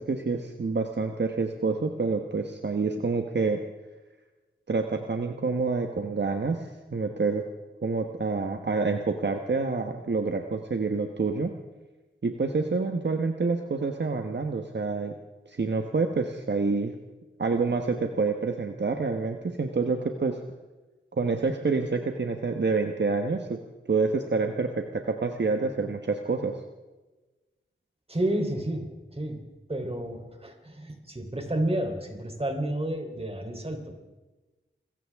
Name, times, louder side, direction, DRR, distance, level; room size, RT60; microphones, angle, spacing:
voice 1, 0.0-3.6 4.7-7.4 7.8-11.5 12.2-15.1 15.5-16.9 17.4-20.4 21.2-23.6 23.9-26.6, right 4 dB, 60° right, 5 dB, 1.2 m, -27 dB
voice 2, 28.1-28.9 29.2-29.4 29.7-33.8, right 1 dB, 30° right, 3 dB, 3.7 m, -30 dB
26.0 x 15.0 x 3.6 m, 1.2 s
wide cardioid pair, 60°, 20 cm